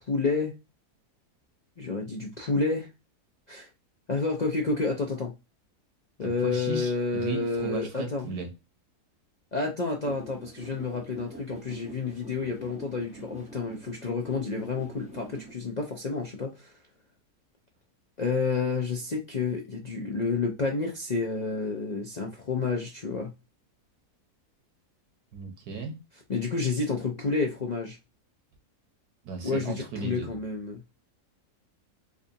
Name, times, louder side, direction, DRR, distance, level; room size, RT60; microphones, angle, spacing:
voice 1, 0.1-0.5 1.8-2.9 3.5-3.7 4.1-5.3 6.2-8.3 9.5-16.7 18.2-23.3 26.3-28.0 29.4-30.8, left 4 dB, 50° left, 0.5 m, -30 dB
voice 2, 6.2-8.5 25.3-25.9 29.2-30.3, right 4 dB, 90° right, 1.7 m, -36 dB
sound 1, 10.0-15.5, right 1 dB, 5° right, 0.7 m, -45 dB
4.8 x 2.6 x 2.7 m
omnidirectional pair, 1.7 m